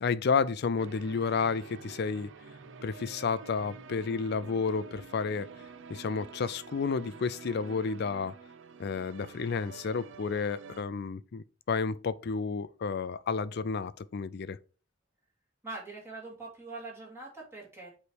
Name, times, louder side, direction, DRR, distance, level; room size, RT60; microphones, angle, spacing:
voice 1, 0.0-2.3 2.8-5.5 5.9-8.3 8.8-14.6, left 5 dB, 55° left, 0.4 m, -31 dB
sound 1, 0.8-10.8, right 5 dB, 70° right, 0.6 m, -48 dB
voice 2, 15.6-17.9, right 3 dB, 10° right, 2.7 m, -43 dB
8.0 x 3.2 x 4.7 m
head